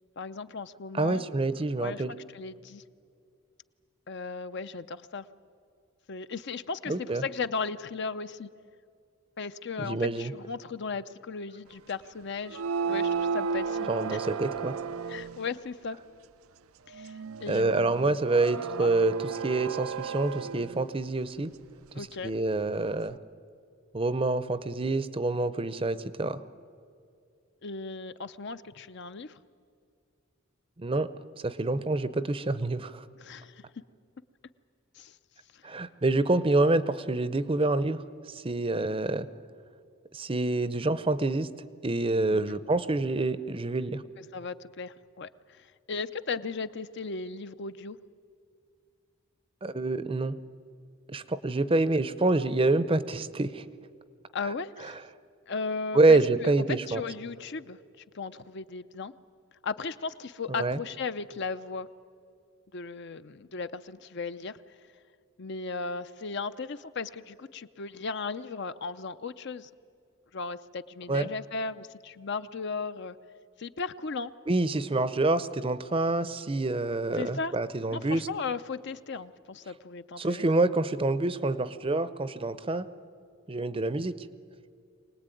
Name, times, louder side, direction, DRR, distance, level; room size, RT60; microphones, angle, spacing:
voice 1, 0.2-1.3 1.8-2.8 4.1-5.3 6.1-8.5 9.4-12.6 12.9-14.2 15.1-16.0 16.9-18.2 18.8-18.9 21.9-22.3 27.6-29.4 33.2-33.6 34.9-35.1 35.5-35.6 42.3-42.6 44.2-48.0 54.3-55.0 55.5-57.8 58.1-59.1 59.6-61.9 62.7-64.6 65.4-69.7 70.3-73.2 73.6-74.3 77.2-77.6 77.9-80.5, left 4 dB, 55° left, 12 dB, 0.6 m, -36 dB
voice 2, 0.9-2.1 6.9-7.2 9.8-10.3 13.9-14.8 17.5-21.5 21.9-23.1 23.9-26.4 30.8-31.1 31.4-33.0 35.6-39.3 40.1-41.5 41.8-44.0 49.6-50.4 51.1-53.6 55.9-57.0 60.5-60.8 71.1-71.3 74.5-78.3 80.2-82.9 83.5-84.1, right 2 dB, 25° right, 14 dB, 0.6 m, -27 dB
sound 1, 12.4-15.5 16.9-20.9, right 5 dB, 85° right, 0.5 m, -33 dB
24.0 x 19.0 x 9.2 m, 2.4 s
head